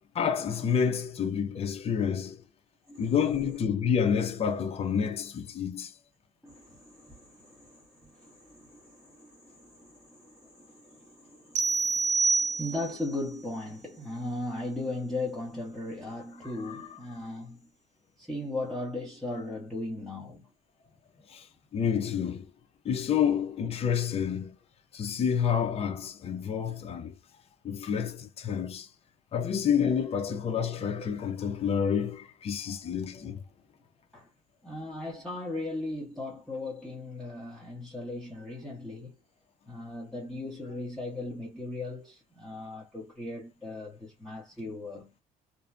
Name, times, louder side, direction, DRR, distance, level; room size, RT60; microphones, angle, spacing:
voice 1, 0.1-2.4 3.0-5.9 16.6-16.8 21.3-21.5 21.7-22.5 22.8-24.6 24.9-27.1 27.6-28.9 29.3-33.4, left 7 dB, 35° left, 0.5 m, -29 dB
voice 2, 6.4-17.7 18.2-20.5 34.1-34.3 34.6-39.1 39.7-45.1, left 2 dB, ahead, 1.0 m, -38 dB
sound 1, 11.6-13.1, right 4 dB, 45° right, 0.6 m, -27 dB
2.6 x 2.1 x 2.3 m
cardioid pair, 110°, 17 cm